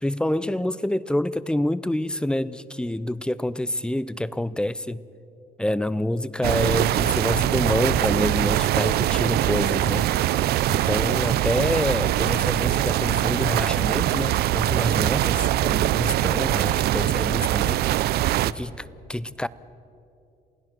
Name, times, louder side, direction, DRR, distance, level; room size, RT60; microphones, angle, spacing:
voice 1, 0.0-5.0 5.6-10.1 10.7-17.8 18.4-19.5, left 1 dB, 5° left, 0.5 m, -27 dB
sound 1, 6.4-18.5, right 14 dB, 70° right, 0.5 m, -23 dB
28.0 x 16.5 x 6.1 m
cardioid pair, 110°, 17 cm